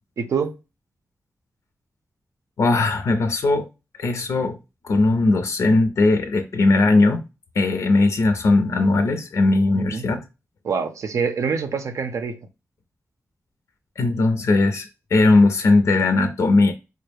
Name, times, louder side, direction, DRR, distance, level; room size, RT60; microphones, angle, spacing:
voice 1, 0.2-0.6 9.7-10.0 10.6-12.5, right 5 dB, 75° right, 0.5 m, -25 dB
voice 2, 2.6-3.7 4.0-4.6 4.8-7.2 7.6-10.2 14.0-16.7, left 2 dB, 75° left, 0.5 m, -18 dB
4.5 x 2.0 x 3.3 m
wide cardioid pair, 130°, 5 cm